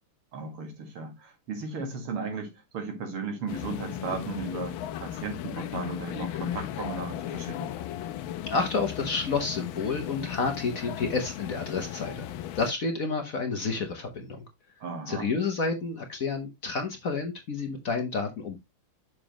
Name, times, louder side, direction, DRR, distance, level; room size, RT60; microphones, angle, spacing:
voice 1, 0.3-7.7 14.8-15.3, right 4 dB, 85° right, 2.8 m, -36 dB
sound 1, 3.5-12.7, left 11 dB, 75° left, 1.4 m, -36 dB
voice 2, 8.4-12.3 12.6-14.4 15.1-18.6, left 4 dB, 50° left, 1.2 m, -30 dB
6.8 x 6.3 x 2.9 m
omnidirectional pair, 2.4 m